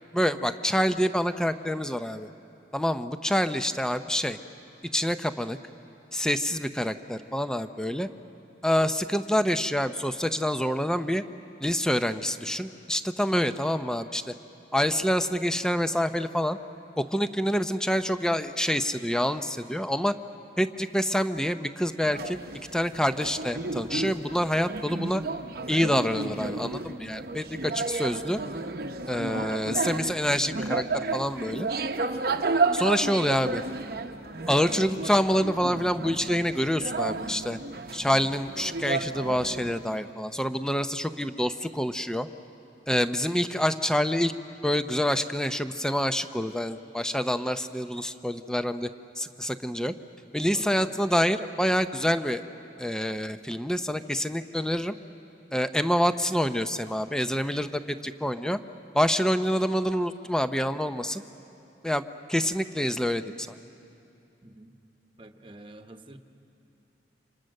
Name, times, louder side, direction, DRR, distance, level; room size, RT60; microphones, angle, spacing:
voice 1, 0.1-2.3 2.7-4.4 4.9-5.6 6.1-8.1 8.6-11.2 11.6-14.3 14.7-16.6 17.0-20.1 20.6-22.4 22.7-25.2 25.7-28.4 29.1-31.7 32.7-33.6 34.5-37.6 37.9-42.3 42.9-44.3 44.6-48.9 49.2-49.9 50.3-52.4 52.8-54.9 55.5-58.6 58.9-61.2 61.8-62.0 62.3-63.6, equal, 5° left, 10 dB, 0.6 m, -27 dB
sound 1, 22.0-39.9, right 3 dB, 55° right, 0.9 m, -32 dB
voice 2, 50.5-50.9 64.4-64.8 65.2-66.2, right 1 dB, 30° right, 6 dB, 1.1 m, -47 dB
30.0 x 27.0 x 6.5 m, 2.8 s
head